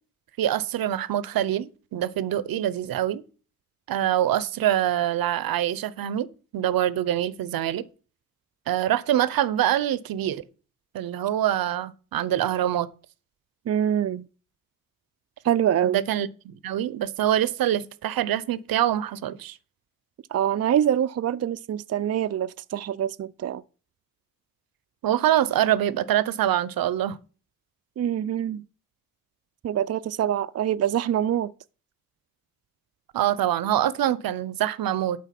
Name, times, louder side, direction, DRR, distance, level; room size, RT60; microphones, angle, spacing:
voice 1, 0.4-3.2 3.9-6.3 6.5-7.8 8.7-10.4 10.9-12.9 15.8-19.6 25.0-27.2 33.1-35.2, right 11 dB, 80° right, 0.7 m, -25 dB
voice 2, 13.7-14.3 15.4-16.0 20.3-23.6 28.0-28.6 29.6-31.5, right 10 dB, 45° right, 0.5 m, -25 dB
11.5 x 4.5 x 5.9 m
cardioid pair, 65°, 35 cm